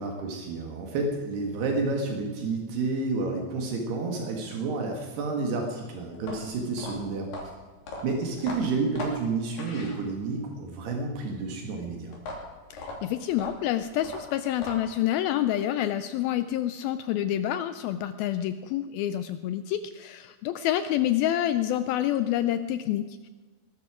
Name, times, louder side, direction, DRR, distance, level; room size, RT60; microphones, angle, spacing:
voice 1, 0.0-7.5 8.0-12.2, right 3 dB, 80° right, 2 dB, 3.9 m, -30 dB
sound 1, 6.1-10.5 12.1-15.1, left 2 dB, 60° left, 4.6 m, -39 dB
voice 2, 12.7-23.3, left 12 dB, 80° left, 11 dB, 2.3 m, -28 dB
20.0 x 12.5 x 5.0 m, 1.3 s
omnidirectional pair, 4.7 m